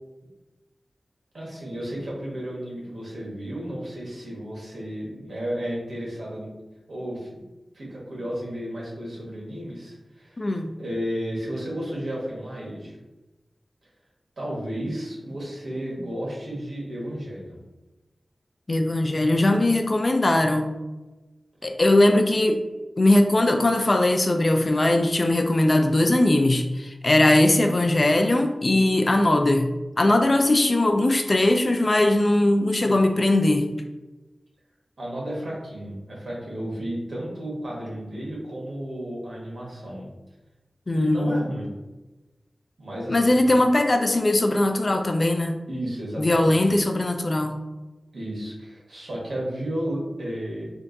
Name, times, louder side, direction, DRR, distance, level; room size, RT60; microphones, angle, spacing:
voice 1, 1.3-6.5 6.9-7.4 7.7-10.4 10.8-13.0 14.4-17.6 27.2-27.5 32.8-32.9 35.0-40.1 40.9-41.7 42.8-43.6 45.7-46.8 48.1-50.7, equal, 75° right, -4 dB, 1.4 m, -33 dB
voice 2, 10.4-10.7 18.7-20.7 21.6-22.6 23.0-29.7 30.0-33.7 40.9-41.5 43.1-45.6 46.2-47.6, left 1 dB, 40° left, 5 dB, 0.4 m, -20 dB
3.4 x 2.5 x 3.9 m, 1.1 s
wide cardioid pair, 90°, 0 cm